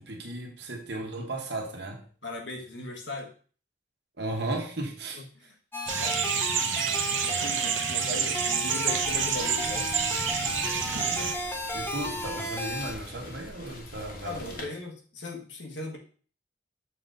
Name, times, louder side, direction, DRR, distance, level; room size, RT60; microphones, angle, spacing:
voice 1, 0.0-2.0 4.2-5.2 11.0-11.4 11.7-14.7, right 2 dB, 60° right, 2 dB, 1.2 m, -35 dB
voice 2, 2.2-3.3 5.1-5.5 6.0-6.2 7.2-9.9 14.2-16.0, left 2 dB, 70° left, 1 dB, 1.4 m, -38 dB
sound 1, 5.7-12.9, left 1 dB, 10° left, 0.7 m, -34 dB
sound 2, 5.9-11.3, right 7 dB, 85° right, 0.8 m, -28 dB
Rain, 9.0-14.6, left 2 dB, 45° left, 1.4 m, -45 dB
7.0 x 3.9 x 3.9 m, 0.42 s
head